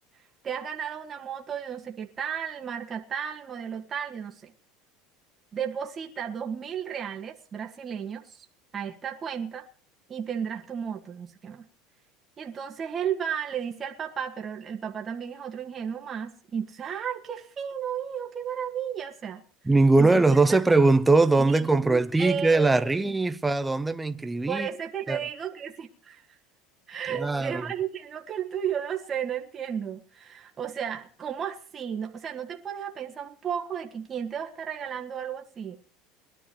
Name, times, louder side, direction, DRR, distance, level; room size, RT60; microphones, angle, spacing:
voice 1, 0.4-4.5 5.5-8.5 8.7-9.6 10.1-11.6 12.4-19.4 20.0-20.2 20.5-20.6 21.4-23.1 24.5-26.2 26.9-35.8, right 8 dB, 25° right, 1.7 m, -34 dB
voice 2, 19.7-24.7 25.1-25.2 27.1-27.7, right 3 dB, 10° right, 0.7 m, -21 dB
21.5 x 12.0 x 3.1 m
supercardioid pair, 130°, 0 cm